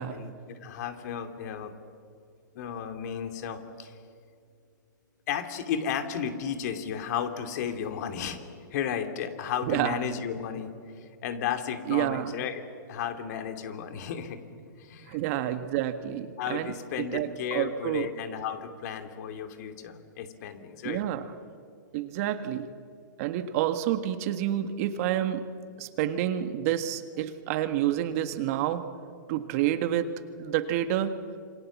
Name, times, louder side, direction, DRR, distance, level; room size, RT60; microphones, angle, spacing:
voice 1, 0.0-1.7 2.5-3.9 5.3-8.4 8.7-10.7 11.2-12.6 12.9-14.4 14.8-15.2 16.4-21.0, left 8 dB, 55° left, 7 dB, 2.7 m, -33 dB
voice 2, 9.6-10.0 11.9-12.3 15.1-16.7 17.1-18.1 20.8-21.2 21.9-22.7 23.2-25.4 25.8-28.8 29.3-30.1 30.4-31.1, right 12 dB, 45° right, 9 dB, 1.6 m, -28 dB
27.0 x 24.5 x 7.3 m, 2.3 s
hypercardioid pair, 135°, 11 cm